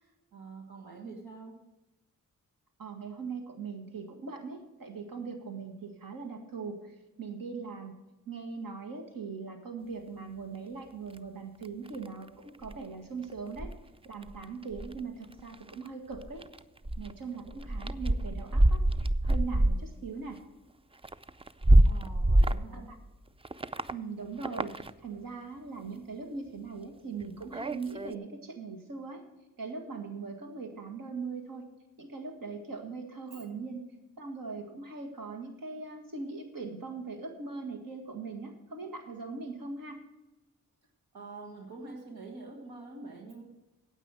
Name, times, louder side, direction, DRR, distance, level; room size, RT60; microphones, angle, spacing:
voice 1, 0.3-1.5 21.8-22.9 33.3-33.4 41.1-43.4, right 3 dB, 90° right, 0 dB, 1.7 m, -45 dB
voice 2, 2.8-7.9 8.3-13.7 14.0-16.4 17.0-18.8 19.2-20.4 22.7-23.0 23.9-29.2 29.6-31.7 32.0-33.8 34.2-40.0, right 4 dB, 65° right, 4 dB, 1.9 m, -40 dB
sound 1, 11.2-11.3 11.6-12.3 12.6-12.7 13.2-13.3 13.6-13.7 14.2-15.0 15.4-15.9 16.1-16.6 16.9-17.1 17.5-19.8 20.1-20.2 21.0-22.7 23.4-23.9 24.4-24.9 27.2-28.1, right 1 dB, 15° right, 0.5 m, -26 dB
9.2 x 8.3 x 7.6 m, 1.0 s
cardioid pair, 45°, 36 cm